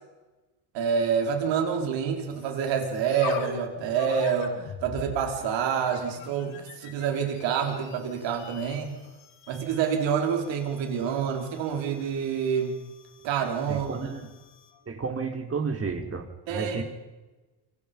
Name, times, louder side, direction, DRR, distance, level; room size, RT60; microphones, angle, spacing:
voice 1, 0.7-9.0 9.5-12.8 13.2-14.1 16.5-16.8, right 7 dB, 85° right, 3 dB, 5.0 m, -27 dB
sound 1, 2.3-14.8, left 6 dB, 85° left, 6.0 m, -44 dB
voice 2, 13.7-14.2 14.9-16.8, right 5 dB, 30° right, 4 dB, 4.7 m, -32 dB
28.5 x 25.0 x 5.5 m, 1.2 s
cardioid pair, 100°, 43 cm